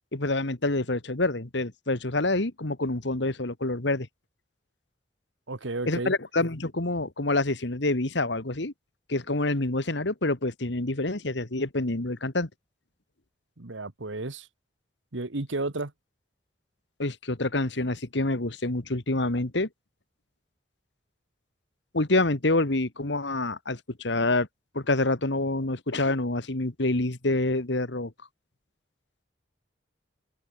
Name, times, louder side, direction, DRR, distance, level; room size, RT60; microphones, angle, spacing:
voice 1, 0.1-4.1 5.9-8.7 9.1-12.5 17.0-19.7 21.9-24.5 24.8-28.1, left 2 dB, 70° left, 1.9 m, -27 dB
voice 2, 5.5-6.1 13.6-14.5 15.1-15.9, right 2 dB, 85° right, 1.6 m, -32 dB
head